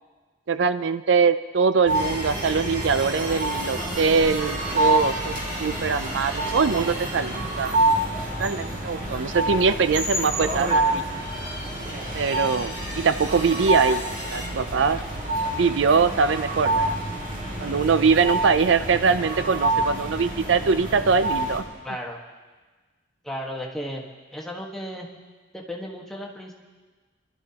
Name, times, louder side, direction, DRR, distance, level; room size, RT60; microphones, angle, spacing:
voice 1, 0.5-7.8 8.4-11.0 12.1-14.0 14.3-15.0 15.5-17.0 17.6-21.6, right 5 dB, 80° right, 12 dB, 0.5 m, -22 dB
sound 1, 1.9-9.9 10.3-14.5, right 1 dB, 20° right, 1.9 m, -37 dB
sound 2, 1.9-21.6, right 1 dB, 45° right, 2.7 m, -27 dB
voice 2, 21.8-22.2 23.2-24.0 24.3-25.1 25.5-26.5, equal, ahead, -1 dB, 1.4 m, -34 dB
25.5 x 12.5 x 2.9 m, 1.3 s
head